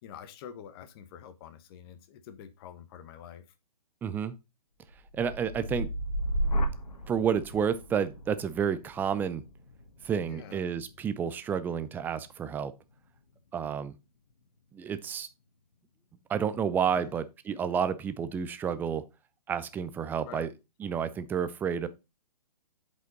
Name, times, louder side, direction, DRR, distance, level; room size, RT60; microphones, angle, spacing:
voice 1, 0.0-3.4 10.2-10.6 16.9-17.1 20.2-20.5, left 8 dB, 35° left, 1.2 m, -47 dB
voice 2, 4.0-4.3 5.1-5.9 7.1-9.4 10.0-12.7 13.5-13.9 14.7-15.3 16.3-19.0 19.5-20.5 20.8-21.9, right 7 dB, 10° right, 0.4 m, -30 dB
sound 1, 4.9-12.9 13.4-13.9, right 1 dB, 75° left, 1.5 m, -35 dB
7.9 x 5.2 x 4.0 m
hypercardioid pair, 130°, 20 cm